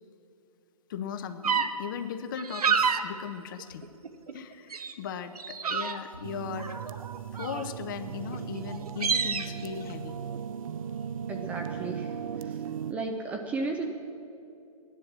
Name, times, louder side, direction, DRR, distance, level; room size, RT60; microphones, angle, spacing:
voice 1, 0.9-3.9 4.3-6.8 7.4-10.1, left 7 dB, 35° left, 10 dB, 0.8 m, -38 dB
sound 1, 1.4-1.7 2.4-3.0 3.6-4.4 4.7-4.9 5.3-6.2 6.6-7.8 8.3-8.4 8.7-9.5, right 6 dB, 85° right, 1.1 m, -28 dB
sound 2, 6.2-12.9, right 7 dB, 65° right, 0.6 m, -37 dB
voice 2, 11.3-12.1 12.4-12.6 12.9-13.9, right 3 dB, 10° right, 2 dB, 0.5 m, -34 dB
14.0 x 11.0 x 7.3 m, 2.7 s
hypercardioid pair, 160°, 19 cm